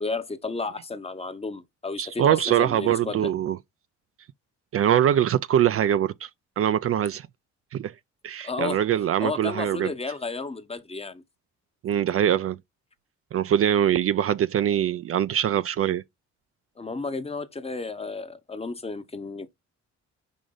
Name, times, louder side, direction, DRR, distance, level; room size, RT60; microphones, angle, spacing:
voice 1, 0.0-3.3 8.4-8.8 9.2-11.2 16.8-19.5, left 3 dB, 20° left, 0.8 m, -32 dB
voice 2, 2.0-3.6 4.7-6.3 6.6-7.3 7.7-7.9 8.2-9.9 11.8-12.6 13.3-16.0, right 10 dB, 50° right, 0.4 m, -23 dB
5.0 x 4.9 x 3.9 m
cardioid pair, 90°, 30 cm